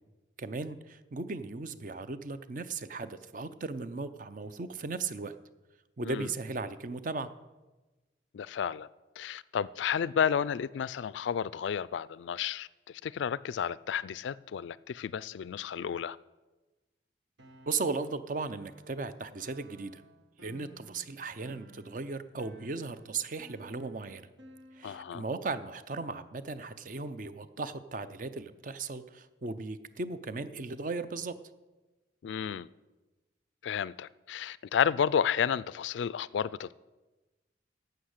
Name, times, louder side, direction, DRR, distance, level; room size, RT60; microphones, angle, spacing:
voice 1, 0.4-5.3 6.0-7.3 17.7-20.0 20.4-24.3 24.8-31.4, right 3 dB, 45° right, 0.6 m, -37 dB
voice 2, 8.3-8.9 9.2-16.2 24.8-25.2 32.2-32.7 33.6-36.7, left 8 dB, 85° left, 0.3 m, -32 dB
sound 1, 17.4-25.3, right 2 dB, 85° right, 1.4 m, -56 dB
11.5 x 7.8 x 6.5 m
head